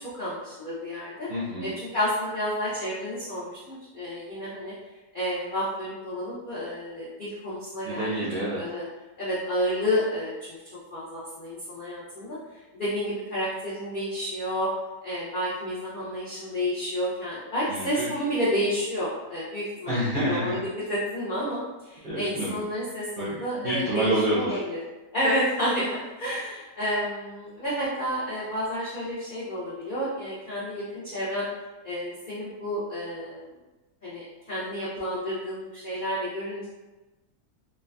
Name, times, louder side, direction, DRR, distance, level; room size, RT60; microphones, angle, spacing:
voice 1, 0.2-1.3 1.6-4.7 5.1-8.1 8.6-8.9 9.2-10.3 10.9-12.4 12.7-14.7 15.0-24.8 25.1-31.5 31.8-33.4 34.0-36.7, equal, 75° left, -9 dB, 0.4 m, -30 dB
voice 2, 1.3-1.7 7.9-8.6 17.7-18.1 19.9-20.6 22.0-22.6 23.2-24.6, right 1 dB, 65° right, -10 dB, 0.5 m, -28 dB
3.1 x 2.3 x 2.2 m, 1.1 s
omnidirectional pair, 1.7 m